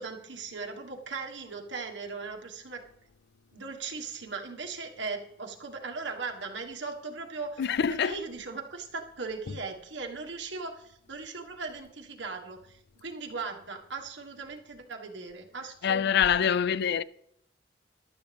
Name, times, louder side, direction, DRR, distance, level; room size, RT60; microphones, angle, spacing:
voice 1, 0.0-2.8 3.5-7.6 7.9-16.1 16.8-17.0, right 4 dB, 70° right, 1.7 m, -38 dB
voice 2, 7.6-8.2 15.8-17.0, left 8 dB, 60° left, 0.4 m, -25 dB
14.5 x 11.5 x 3.5 m
head